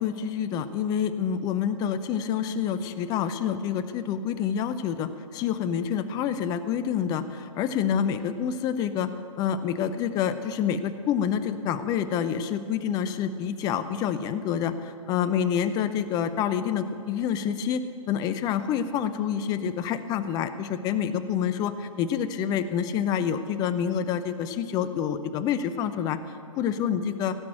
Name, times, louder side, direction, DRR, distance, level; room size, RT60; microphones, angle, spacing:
voice 1, 0.0-9.1 9.4-26.2 26.6-27.4, left 8 dB, 20° left, 12 dB, 0.6 m, -27 dB
17.0 x 6.1 x 8.7 m, 2.6 s
hypercardioid pair, 130°, 18 cm